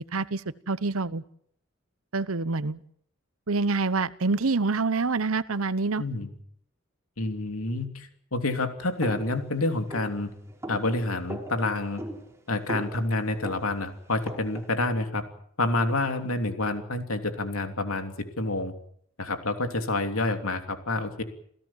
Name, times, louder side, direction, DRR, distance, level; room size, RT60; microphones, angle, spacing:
voice 1, 0.1-1.2 2.1-2.8 3.5-6.0, right 3 dB, 85° right, 17 dB, 0.9 m, -26 dB
voice 2, 6.0-6.3 7.2-10.3 10.7-12.0 12.5-15.2 15.6-18.7 19.2-21.2, left 2 dB, 85° left, 6 dB, 3.1 m, -28 dB
sound 1, 9.0-14.8, right 1 dB, 15° right, 3.0 m, -41 dB
28.5 x 16.5 x 7.4 m, 0.66 s
head